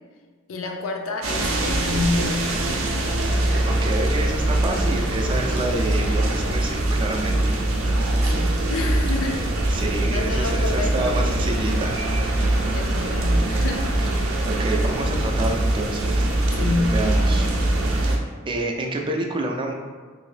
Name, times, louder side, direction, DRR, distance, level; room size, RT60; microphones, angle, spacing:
voice 1, 0.5-2.8 7.8-9.8 10.1-11.2 12.7-14.0 16.6-17.1, left 2 dB, 85° left, 3 dB, 0.4 m, -29 dB
sound 1, 1.2-18.2, right 1 dB, 85° right, 0.5 m, -22 dB
voice 2, 3.6-7.6 9.7-12.0 14.2-16.3 16.9-18.2 18.4-19.7, right 2 dB, 25° right, 1 dB, 0.3 m, -28 dB
2.8 x 2.6 x 3.2 m, 1.5 s
head